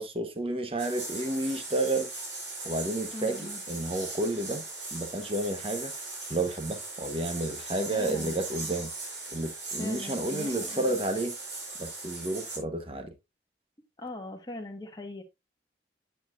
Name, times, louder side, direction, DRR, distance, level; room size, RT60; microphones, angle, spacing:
voice 1, 0.0-2.1 2.6-4.6 4.9-5.9 6.3-8.9 9.3-11.3 11.8-13.1, right 2 dB, 30° right, 1.2 m, -31 dB
sound 1, 0.8-12.6, right 2 dB, 85° right, 4.2 m, -39 dB
voice 2, 3.1-3.6 7.9-8.4 9.8-11.0 14.0-15.2, left 1 dB, 25° left, 1.5 m, -40 dB
8.7 x 6.9 x 2.6 m
head